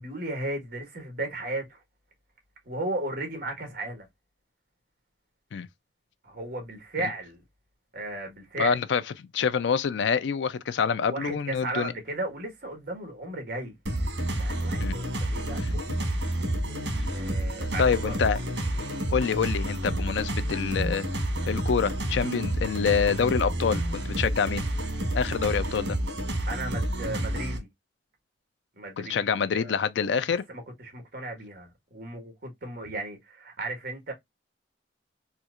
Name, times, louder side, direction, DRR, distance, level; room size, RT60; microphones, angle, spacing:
voice 1, 0.0-1.8 2.6-4.1 6.2-7.4 7.9-8.8 11.0-13.7 14.4-16.1 17.1-18.2 18.7-18.9 19.2-19.4 26.5-27.7 28.8-29.8 30.3-34.1, right 2 dB, 55° right, 1.5 m, -35 dB
voice 2, 8.6-9.0 9.3-11.9 14.8-15.0 15.6-15.7 17.8-18.4 19.1-21.0 21.5-24.6 25.1-26.0 29.0-30.4, left 6 dB, 80° left, 0.4 m, -26 dB
sound 1, 13.9-27.6, right 1 dB, 85° right, 1.2 m, -29 dB
4.4 x 2.4 x 2.4 m
head